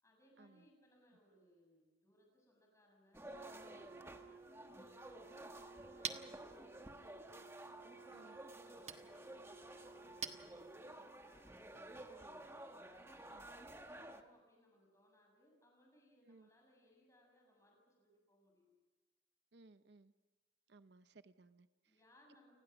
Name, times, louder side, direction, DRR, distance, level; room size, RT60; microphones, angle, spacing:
voice 1, 0.0-7.4 7.9-12.5 12.9-18.7 21.8-22.6, equal, 15° left, 7.1 m, -70 dB
sound 1, 3.1-14.2, right 1 dB, 15° right, 1.3 m, -53 dB
Wind instrument woodwind instrument, 3.3-11.2, right 3 dB, 90° right, 1.8 m, -60 dB
Chink clink, 5.4-11.1, right 6 dB, 35° right, 1.4 m, -51 dB
voice 2, 19.5-20.1 20.7-22.0, right 3 dB, 70° right, 0.7 m, -63 dB
29.0 x 20.0 x 6.1 m
head